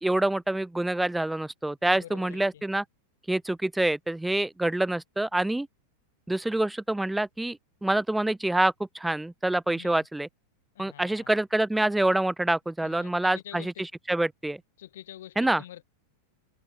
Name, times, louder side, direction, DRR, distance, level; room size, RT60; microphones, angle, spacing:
voice 1, 0.0-2.8 3.3-5.7 6.3-10.3 10.8-13.7 14.1-14.6 15.4-15.6, right 1 dB, 5° right, 0.5 m, -26 dB
voice 2, 1.8-2.6 9.7-10.1 10.7-11.3 12.8-13.8 14.8-15.8, left 12 dB, 80° left, 6.6 m, -46 dB
supercardioid pair, 140°, 0 cm